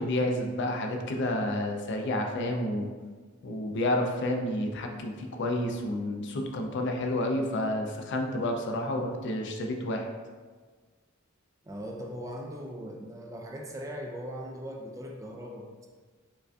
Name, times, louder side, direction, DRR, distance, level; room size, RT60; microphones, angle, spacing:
voice 1, 0.0-2.9 3.4-10.1, left 1 dB, 60° left, 3 dB, 0.4 m, -30 dB
voice 2, 11.7-15.9, equal, 15° right, 0 dB, 0.3 m, -39 dB
4.7 x 2.5 x 2.3 m, 1.4 s
head